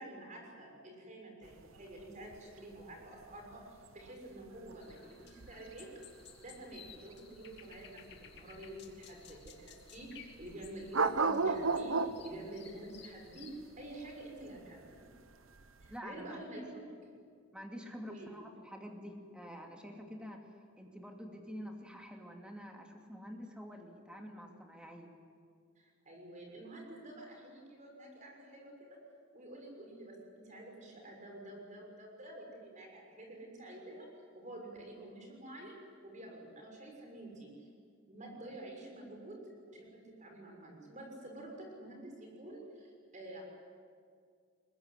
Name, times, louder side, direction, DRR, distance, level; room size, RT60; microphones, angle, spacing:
voice 1, 0.0-5.9 6.4-8.0 8.3-15.1 15.8-17.1 18.1-18.3 25.8-29.0 29.3-34.1 34.3-35.7 36.0-37.7 38.1-39.4 39.7-43.4, right 1 dB, 40° right, 1 dB, 6.3 m, -49 dB
sound 1, 1.4-16.0, right 4 dB, 85° right, 1.0 m, -37 dB
sound 2, 4.8-13.6, left 8 dB, 55° left, 2.2 m, -57 dB
voice 2, 15.9-16.5 17.5-20.4 20.8-25.1, equal, 5° right, 2 dB, 2.6 m, -47 dB
22.0 x 21.0 x 9.9 m, 2.2 s
head